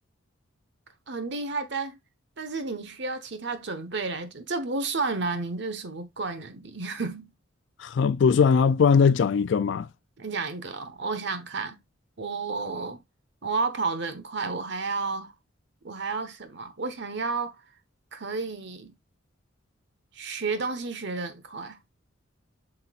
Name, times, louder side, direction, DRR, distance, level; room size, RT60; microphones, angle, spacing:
voice 1, 1.1-2.0 2.4-7.3 10.2-11.8 12.2-13.0 13.4-15.3 15.8-17.6 18.1-18.9 20.1-21.8, right 4 dB, 60° right, 1.2 m, -31 dB
voice 2, 7.8-9.9, left 6 dB, 65° left, 0.3 m, -20 dB
7.9 x 5.6 x 2.4 m
head